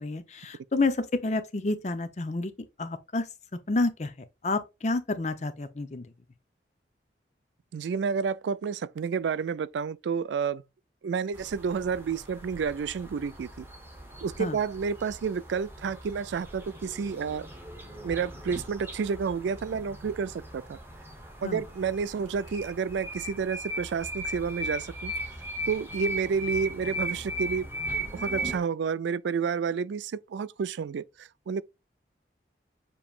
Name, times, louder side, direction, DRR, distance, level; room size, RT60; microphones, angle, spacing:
voice 1, 0.0-2.5 2.8-3.3 3.7-4.1 4.4-6.1 14.4-14.6 21.4-21.6, left 3 dB, 40° left, 0.5 m, -29 dB
voice 2, 7.7-10.6 11.0-13.7 14.2-17.5 18.0-20.8 21.4-25.1 25.7-27.7 28.1-31.6, right 6 dB, 85° right, 0.3 m, -30 dB
sound 1, 11.3-28.6, right 1 dB, 15° right, 0.8 m, -38 dB
7.0 x 2.9 x 2.4 m
head